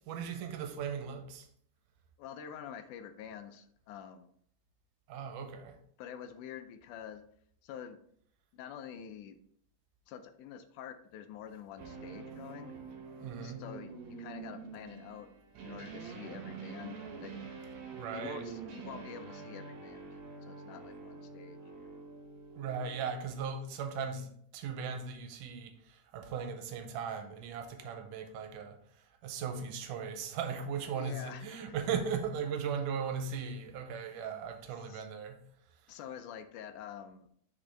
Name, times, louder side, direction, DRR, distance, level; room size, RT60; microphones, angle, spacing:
voice 1, 0.1-1.5 5.1-5.8 13.2-13.6 17.9-18.5 22.6-35.4, right 6 dB, 85° right, 2.3 m, -38 dB
voice 2, 2.2-4.3 6.0-7.2 7.6-8.0 8.5-9.4 10.1-12.7 13.4-15.3 15.6-17.5 18.1-22.0 31.0-31.8 34.9-35.1 35.9-37.3, left 8 dB, 80° left, 2.0 m, -47 dB
sound 1, 11.8-23.7, right 5 dB, 65° right, 2.1 m, -47 dB
6.1 x 5.3 x 3.3 m
omnidirectional pair, 3.6 m